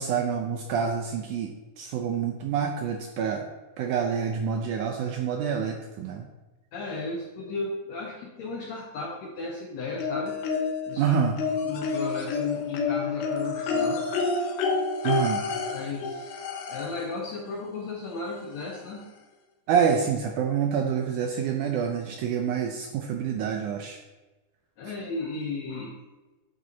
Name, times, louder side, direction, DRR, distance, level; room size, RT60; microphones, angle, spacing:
voice 1, 0.0-3.5 3.8-6.3 11.0-11.4 15.0-15.4 19.7-24.0, right 7 dB, 75° right, 2 dB, 1.9 m, -27 dB
voice 2, 6.7-10.4 10.9-11.2 11.6-14.0 15.7-16.3 16.7-19.1 24.8-26.0, left 3 dB, 75° left, -1 dB, 1.7 m, -35 dB
sound 1, 10.0-10.9 11.4-17.1 18.3-18.4 18.7-18.8, left 4 dB, 90° left, 2.9 m, -29 dB
9.6 x 5.4 x 4.0 m, 1.1 s
omnidirectional pair, 4.2 m